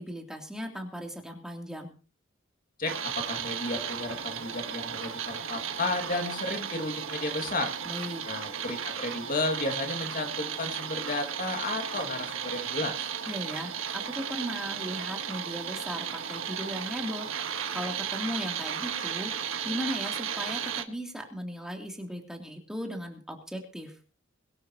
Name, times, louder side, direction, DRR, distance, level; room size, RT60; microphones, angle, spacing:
voice 1, 0.0-1.9 7.8-8.2 13.3-19.3 19.6-23.9, equal, 5° right, 1 dB, 3.0 m, -37 dB
voice 2, 2.8-7.8 8.3-13.1, left 2 dB, 45° left, 4 dB, 2.2 m, -33 dB
sound 1, 2.9-20.8, right 8 dB, 80° right, 1.5 m, -35 dB
23.0 x 12.0 x 3.0 m, 0.37 s
head